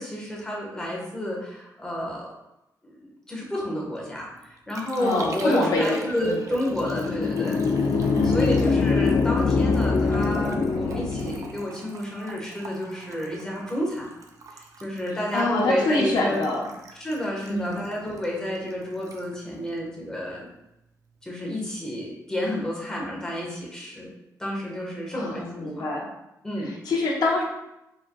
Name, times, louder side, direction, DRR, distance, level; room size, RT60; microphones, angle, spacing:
voice 1, 0.0-2.3 2.8-7.6 8.2-14.1 14.5-16.4 16.9-20.5 21.2-24.1 24.4-25.8 26.4-26.8, left 1 dB, 10° left, -3 dB, 1.3 m, -30 dB
Liquid, 4.0-20.6 20.8-21.4, right 3 dB, 55° right, 0.6 m, -43 dB
voice 2, 5.0-6.4 8.1-8.5 15.3-16.7 17.5-17.9 25.1-26.1 26.6-27.4, left 2 dB, 75° left, -1 dB, 0.8 m, -26 dB
sound 1, 6.7-11.7, left 4 dB, 50° left, 0.3 m, -23 dB
5.1 x 3.6 x 2.3 m, 0.89 s
cardioid pair, 105°, 7 cm